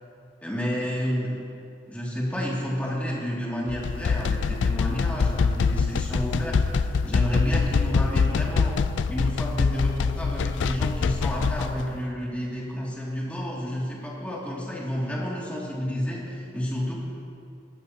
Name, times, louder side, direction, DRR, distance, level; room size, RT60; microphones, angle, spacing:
voice 1, 0.4-1.4 1.9-16.9, equal, 10° left, -5 dB, 2.3 m, -30 dB
sound 1, 3.7-11.9, left 5 dB, 80° left, 0.4 m, -24 dB
22.0 x 12.0 x 2.8 m, 2.5 s
head